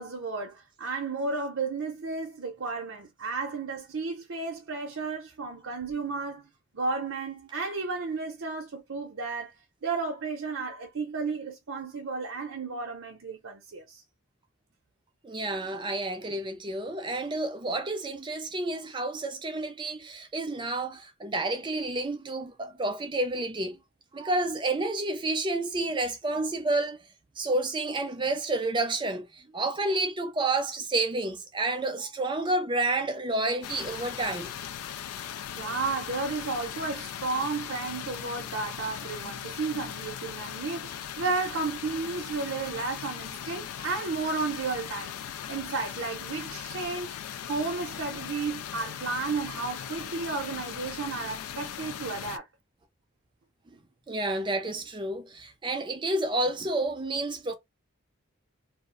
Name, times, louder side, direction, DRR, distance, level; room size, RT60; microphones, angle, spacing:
voice 1, 0.0-6.5 6.7-9.5 9.8-14.0 35.5-47.1 47.5-52.4, right 4 dB, 65° right, 0.6 m, -33 dB
voice 2, 15.2-23.8 24.1-27.0 27.4-34.5 54.1-57.5, right 2 dB, 20° right, 0.4 m, -30 dB
sound 1, 33.6-52.4, left 9 dB, 85° left, 0.3 m, -39 dB
2.4 x 2.0 x 3.7 m
head